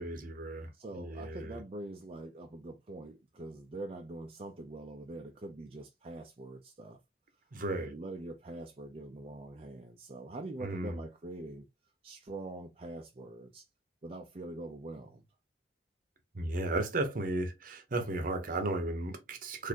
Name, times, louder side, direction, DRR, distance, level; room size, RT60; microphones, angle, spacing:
voice 1, 0.0-1.6 7.5-8.0 10.6-11.0 16.3-19.7, right 2 dB, 50° right, 0.8 m, -35 dB
voice 2, 0.7-7.0 7.7-11.7 12.0-13.7 14.0-15.2, right 2 dB, 35° right, 0.4 m, -44 dB
4.1 x 2.6 x 2.8 m
head